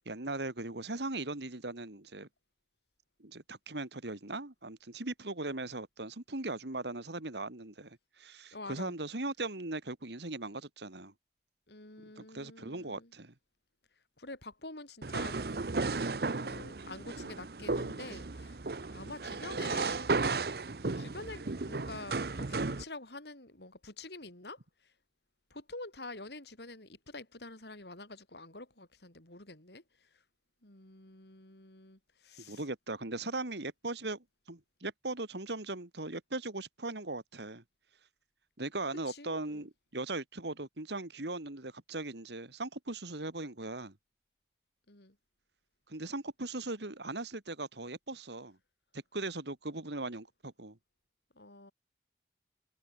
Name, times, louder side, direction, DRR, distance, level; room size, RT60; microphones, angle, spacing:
voice 1, 0.0-2.3 3.2-11.1 12.2-13.3 32.4-37.6 38.6-44.0 45.9-48.6 48.9-50.8, right 2 dB, 80° right, 2.3 m, -39 dB
voice 2, 8.5-8.9 11.7-13.1 14.2-15.7 16.3-18.6 18.9-20.1 20.9-24.9 25.5-30.2 30.6-32.6 39.1-39.7 44.9-45.2 51.3-51.7, left 2 dB, 75° left, 4.9 m, -47 dB
sound 1, 15.0-22.8, right 3 dB, 60° right, 0.8 m, -34 dB
head